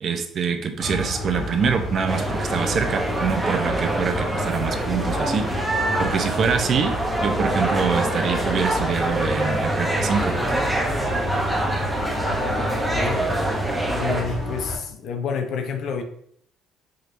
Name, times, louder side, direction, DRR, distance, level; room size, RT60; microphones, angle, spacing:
voice 1, 0.0-5.5 6.0-10.3, right 6 dB, 45° right, 6 dB, 0.5 m, -25 dB
sound 1, 0.8-14.8, equal, 30° left, 1.3 m, -30 dB
sound 2, 2.1-14.2, right 1 dB, 5° right, 0.7 m, -25 dB
voice 2, 12.4-13.3 13.9-16.0, left 5 dB, 60° left, 6 dB, 0.6 m, -29 dB
4.9 x 3.0 x 2.5 m, 0.65 s
cardioid pair, 120°, 0 cm